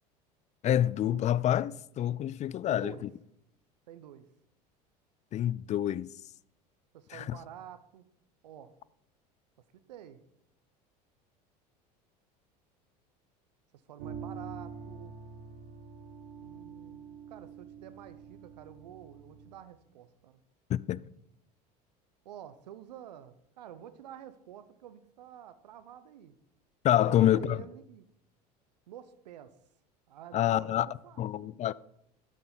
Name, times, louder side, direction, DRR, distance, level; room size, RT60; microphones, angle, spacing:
voice 1, 0.6-3.1 5.3-6.1 7.1-7.4 20.7-21.0 26.8-27.6 30.3-30.9 31.2-31.7, left 11 dB, 35° left, 0.4 m, -27 dB
voice 2, 2.6-3.1 3.9-4.2 6.9-8.0 8.4-8.8 9.9-10.2 13.9-15.1 16.4-17.0 17.3-20.4 22.2-26.3 27.1-28.1 28.9-29.6 30.1-31.2, right 10 dB, 85° right, 0.8 m, -49 dB
sound 1, 14.0-19.6, right 6 dB, 65° right, 1.7 m, -46 dB
12.0 x 6.7 x 4.0 m
hypercardioid pair, 80°, 21 cm